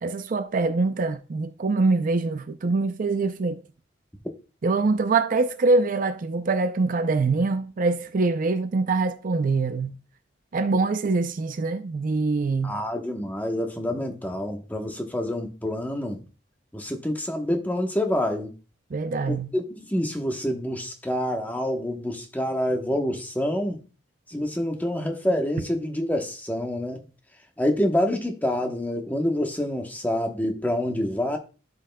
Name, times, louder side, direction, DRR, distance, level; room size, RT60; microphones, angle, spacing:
voice 1, 0.0-3.6 4.6-10.0 10.5-12.8 18.9-19.5, right 3 dB, 45° right, 0.5 m, -24 dB
voice 2, 12.6-16.2 16.7-18.5 19.3-23.8 24.3-27.0 27.6-31.4, left 1 dB, 10° left, 1.0 m, -27 dB
11.0 x 5.6 x 2.2 m
head